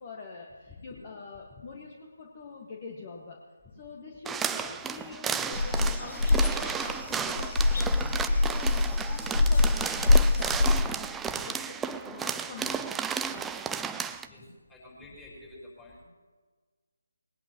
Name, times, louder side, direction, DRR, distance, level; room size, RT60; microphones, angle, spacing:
voice 1, 0.0-3.4 3.8-11.0 11.4-13.0 13.3-13.5, left 4 dB, 30° left, -1 dB, 1.8 m, -44 dB
sound 1, 4.3-14.3, right 6 dB, 5° right, 0.4 m, -33 dB
sound 2, 5.5-10.8, left 3 dB, 55° left, 0.9 m, -24 dB
voice 2, 14.2-16.0, left 2 dB, 10° left, -3 dB, 4.5 m, -49 dB
21.0 x 19.0 x 3.1 m, 1.4 s
figure-of-eight pair, 150°, 0 cm